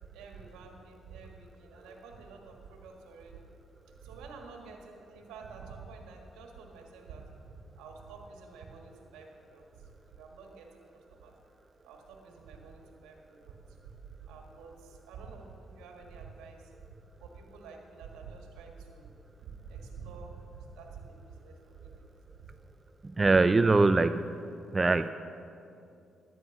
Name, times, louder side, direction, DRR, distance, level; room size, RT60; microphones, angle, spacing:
voice 1, 0.1-3.4 4.0-11.4 11.8-16.7 17.2-22.5, right 4 dB, 85° right, 2 dB, 1.7 m, -49 dB
voice 2, 23.0-24.3 24.7-25.1, right 3 dB, 30° right, 11 dB, 0.4 m, -23 dB
12.0 x 9.8 x 5.9 m, 2.6 s
supercardioid pair, 55°, 0 cm